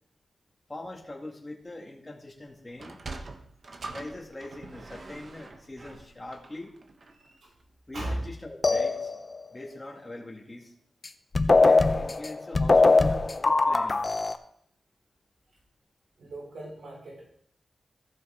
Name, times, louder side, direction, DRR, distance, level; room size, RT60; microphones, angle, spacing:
voice 1, 0.7-3.0 3.9-6.7 7.9-9.1 9.5-10.7 11.6-14.0, left 2 dB, 20° left, -2 dB, 2.0 m, -42 dB
Sliding door, 2.7-7.3, right 3 dB, 50° right, 1.0 m, -44 dB
voice 2, 7.2-7.5 7.9-8.2 16.2-17.3, right 1 dB, 85° right, -4 dB, 4.8 m, -37 dB
sound 1, 8.6-9.4 11.0-11.1 11.3-14.4, left 3 dB, 35° left, 0.7 m, -21 dB
15.0 x 5.8 x 4.4 m, 0.67 s
wide cardioid pair, 100°, 0 cm